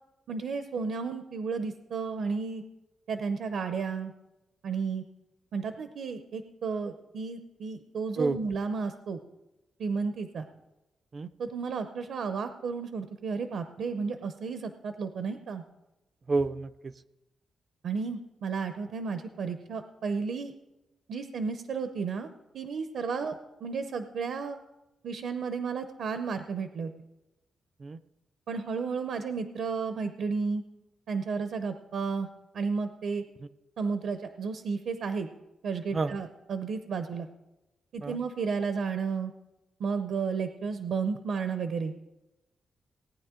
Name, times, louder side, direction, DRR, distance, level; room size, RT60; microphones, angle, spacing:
voice 1, 0.3-2.6 3.1-4.1 4.6-5.0 5.5-9.2 9.8-10.5 11.4-15.6 17.8-20.5 21.1-22.3 22.5-24.6 25.0-26.9 28.5-30.6 31.1-32.3 32.5-33.2 33.8-35.3 35.6-37.3 37.9-39.3 39.8-41.9, right 5 dB, 70° right, 9 dB, 0.6 m, -32 dB
voice 2, 16.3-16.9 23.2-23.3 27.8-28.0 35.9-36.1 38.0-38.2, right 3 dB, 30° right, 14 dB, 0.3 m, -29 dB
18.0 x 9.4 x 3.7 m, 0.99 s
wide cardioid pair, 170°, 0 cm